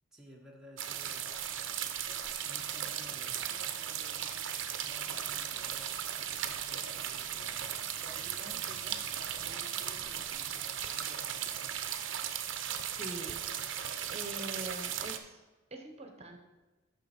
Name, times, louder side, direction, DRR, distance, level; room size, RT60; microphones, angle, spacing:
voice 1, 0.1-1.2 2.4-4.5 4.8-7.6 8.0-9.1 9.4-10.5 10.9-11.7, equal, 5° right, -2 dB, 0.9 m, -55 dB
sound 1, 0.8-15.2, right 9 dB, 60° right, 0.7 m, -37 dB
voice 2, 13.0-13.3 13.6-13.8 14.1-15.4 15.7-16.4, right 1 dB, 30° right, 4 dB, 0.9 m, -43 dB
9.1 x 6.4 x 4.4 m, 1.2 s
head